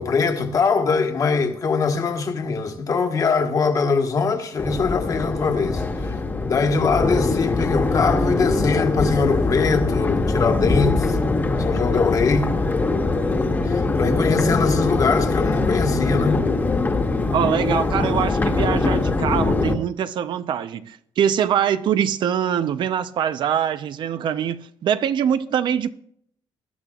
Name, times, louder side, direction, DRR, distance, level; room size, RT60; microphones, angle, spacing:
voice 1, 0.0-6.1 6.4-11.2 11.6-12.5 13.6-16.4, left 4 dB, 40° left, 1.4 m, -22 dB
Crowd, 4.6-19.7, left 3 dB, 20° left, 1.3 m, -22 dB
voice 2, 17.3-25.9, right 9 dB, 60° right, 0.8 m, -23 dB
20.5 x 12.0 x 2.5 m
cardioid pair, 130°, 9 cm